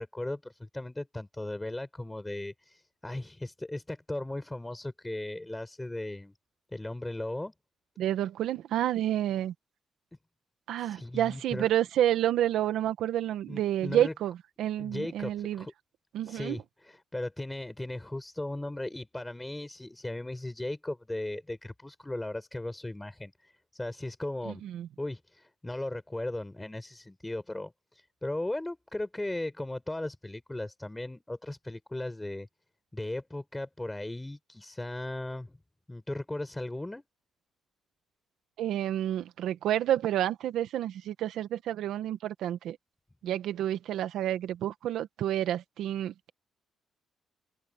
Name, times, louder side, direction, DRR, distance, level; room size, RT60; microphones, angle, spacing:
voice 1, 0.0-6.3 6.7-7.5 10.8-11.7 13.5-14.1 14.8-15.7 16.2-24.6 25.0-32.5 32.9-35.5 35.9-37.0, left 1 dB, 10° left, 4.9 m, -37 dB
voice 2, 8.0-9.5 10.7-15.7 16.1-16.6 24.5-24.9 38.6-42.8 43.2-46.3, right 12 dB, 80° right, 1.6 m, -29 dB
open air
cardioid pair, 90°, 0 cm